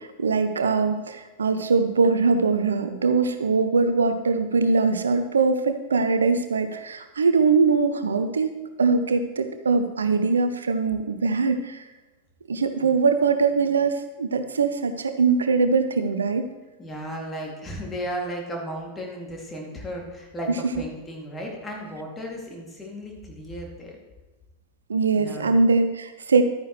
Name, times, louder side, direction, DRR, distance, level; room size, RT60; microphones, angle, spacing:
voice 1, 0.0-8.5 8.8-11.8 12.5-16.4 24.9-26.4, right 4 dB, 70° right, 9 dB, 0.6 m, -22 dB
voice 2, 16.8-24.0 25.1-25.6, equal, 15° left, -1 dB, 2.3 m, -35 dB
12.0 x 9.2 x 3.0 m, 1.2 s
figure-of-eight pair, 90°, 0 cm